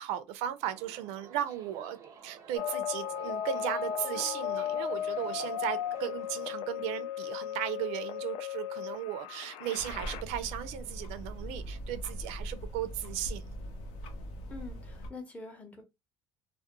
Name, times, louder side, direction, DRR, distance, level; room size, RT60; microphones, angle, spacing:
voice 1, 0.0-13.4, right 11 dB, 85° right, 0.4 m, -36 dB
Subway metro underground, 0.6-6.6, right 6 dB, 30° right, 0.5 m, -51 dB
sound 1, 2.6-10.2, left 9 dB, 55° left, 0.3 m, -36 dB
sound 2, 9.8-15.1, equal, 80° left, 0.7 m, -41 dB
voice 2, 14.5-15.8, left 3 dB, 15° left, 0.6 m, -45 dB
2.3 x 2.1 x 2.8 m
cardioid pair, 160°, 11 cm